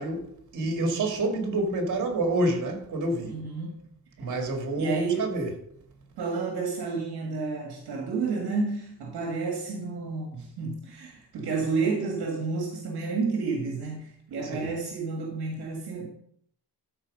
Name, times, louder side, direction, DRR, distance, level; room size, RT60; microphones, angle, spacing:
voice 1, 0.0-3.4 4.2-5.5 14.4-14.7, right 1 dB, 50° right, 2.4 m, -28 dB
voice 2, 0.6-1.1 3.2-3.8 4.3-4.4 4.8-5.4 6.2-16.1, right 4 dB, 70° right, 1.9 m, -31 dB
13.0 x 4.7 x 5.3 m
wide cardioid pair, 165°, 40 cm